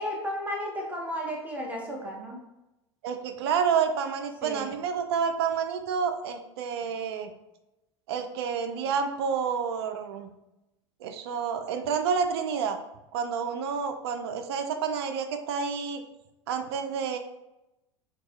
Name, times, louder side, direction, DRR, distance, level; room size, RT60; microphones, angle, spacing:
voice 1, 0.0-2.4 4.4-4.7, equal, 10° right, -2 dB, 0.6 m, -33 dB
voice 2, 3.0-7.3 8.1-10.3 11.0-12.8 13.1-16.0 16.5-17.2, right 6 dB, 55° right, 7 dB, 0.4 m, -29 dB
3.9 x 2.6 x 2.3 m, 0.94 s
figure-of-eight pair, 80°, 15 cm